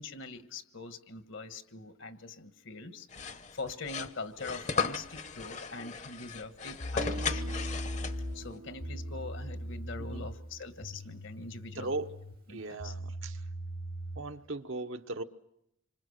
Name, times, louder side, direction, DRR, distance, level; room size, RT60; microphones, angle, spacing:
voice 1, 0.0-7.6 8.3-11.9 12.5-12.9, left 3 dB, 65° left, 1.5 m, -43 dB
sound 1, 3.1-8.5, left 5 dB, 35° left, 0.9 m, -36 dB
sound 2, 6.8-14.3, equal, 90° left, 7.0 m, -40 dB
Guitar, 7.0-10.9, right 2 dB, 45° right, 0.9 m, -46 dB
voice 2, 11.8-12.1 12.5-13.4 14.2-15.2, right 2 dB, 70° right, 1.1 m, -38 dB
27.0 x 25.5 x 6.6 m
head